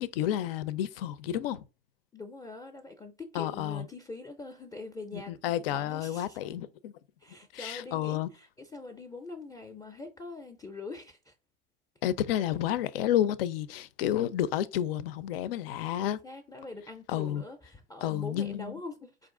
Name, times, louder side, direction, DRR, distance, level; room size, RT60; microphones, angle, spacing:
voice 1, 0.0-1.6 3.3-3.9 5.1-6.9 7.5-8.3 12.0-16.2 17.1-17.4 18.0-18.7, left 11 dB, 75° left, 0.5 m, -30 dB
voice 2, 2.1-5.3 5.7-6.4 7.2-11.3 16.0-19.1, left 3 dB, 10° left, 0.5 m, -43 dB
4.5 x 2.5 x 3.6 m
hypercardioid pair, 110°, 29 cm